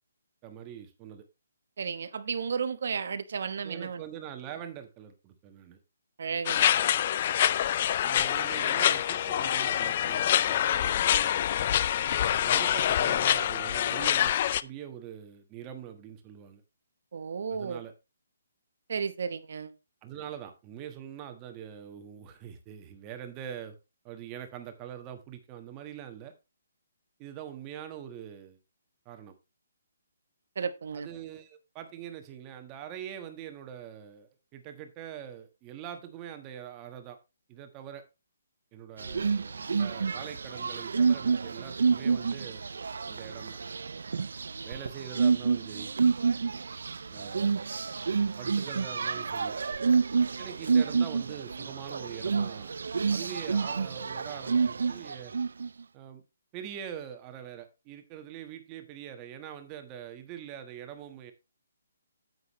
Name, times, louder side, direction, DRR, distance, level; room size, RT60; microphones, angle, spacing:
voice 1, 0.4-1.2 3.6-5.8 8.0-11.4 12.3-14.3 14.6-16.6 17.5-17.9 20.0-23.7 24.0-26.3 27.2-28.6 29.0-29.3 30.9-37.2 37.5-38.0 38.7-42.6 43.1-43.6 44.6-45.9 47.1-47.7 48.0-49.6 50.4-52.8 53.1-55.3 55.9-56.2 56.5-61.3, right 9 dB, 15° right, 1.3 m, -43 dB
voice 2, 1.8-4.0 6.2-6.7 17.1-17.8 18.9-19.7 30.6-31.1, right 6 dB, 55° right, 1.1 m, -33 dB
sound 1, 6.5-14.6, left 10 dB, 30° left, 0.4 m, -26 dB
sound 2, 39.0-55.7, right 5 dB, 75° right, 0.5 m, -29 dB
9.8 x 8.0 x 3.1 m
hypercardioid pair, 170°, 0 cm